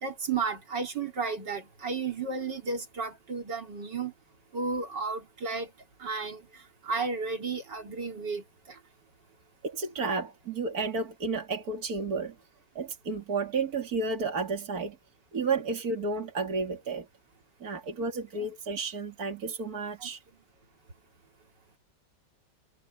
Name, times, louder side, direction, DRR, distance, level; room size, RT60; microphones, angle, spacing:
voice 1, 0.0-4.1 4.5-5.7 6.0-8.8 20.0-20.1, right 4 dB, 80° right, 3.8 m, -33 dB
voice 2, 9.6-12.3 12.7-15.0 15.3-17.1 17.6-20.2, right 4 dB, 55° right, 3.1 m, -32 dB
omnidirectional pair, 1.9 m